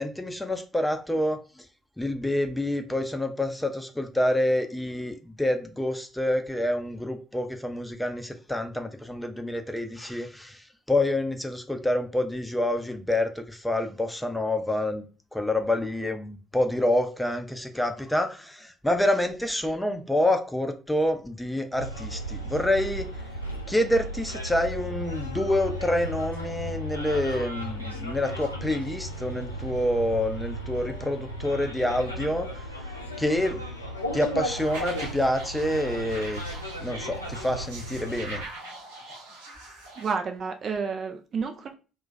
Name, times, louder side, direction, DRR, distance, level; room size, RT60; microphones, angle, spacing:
voice 1, 0.0-1.7 2.0-15.1 15.3-23.1 23.7-32.6 33.2-33.6 34.1-36.4 36.8-38.4, left 1 dB, 5° left, 0.5 m, -27 dB
Bus, 21.8-38.5, equal, 90° left, 0.4 m, -35 dB
sound 1, 34.4-40.1, right 2 dB, 75° right, 0.7 m, -42 dB
voice 2, 40.0-41.7, right 5 dB, 45° right, 0.3 m, -30 dB
2.2 x 2.2 x 3.9 m
figure-of-eight pair, 50°, 0 cm